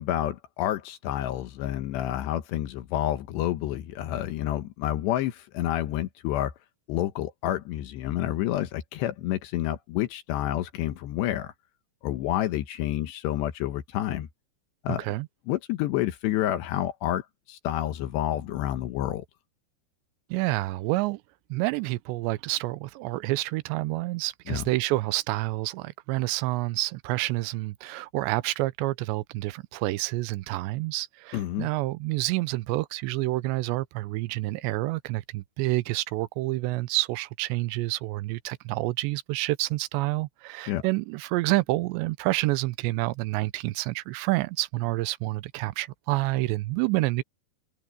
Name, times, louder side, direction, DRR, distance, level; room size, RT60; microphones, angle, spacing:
voice 1, 0.0-6.5 6.9-11.5 12.0-14.3 14.8-15.1 15.5-19.2 24.5-24.6 31.3-31.7 40.7-40.8, left 12 dB, 80° left, 3.3 m, -29 dB
voice 2, 20.3-21.2 21.5-47.2, right 19 dB, 90° right, 2.9 m, -28 dB
omnidirectional pair, 5.0 m